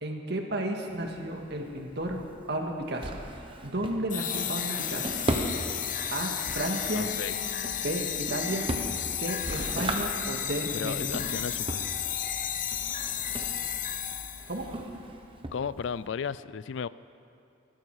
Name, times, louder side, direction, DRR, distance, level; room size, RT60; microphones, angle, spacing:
voice 1, 0.0-2.2 2.5-3.1 3.6-5.1 6.1-7.1 7.8-8.7 9.1-11.1 14.5-14.7, right 1 dB, 55° right, 2 dB, 1.8 m, -32 dB
Drawer open or close, 0.9-16.1, right 1 dB, 25° right, 1.1 m, -38 dB
sound 1, 4.1-14.6, left 9 dB, 40° left, 0.7 m, -33 dB
sound 2, 6.6-14.8, equal, 5° left, 1.2 m, -52 dB
voice 2, 7.0-7.4 10.7-11.9 15.5-16.9, left 6 dB, 65° left, 17 dB, 0.4 m, -34 dB
20.0 x 15.0 x 4.8 m, 2.6 s
head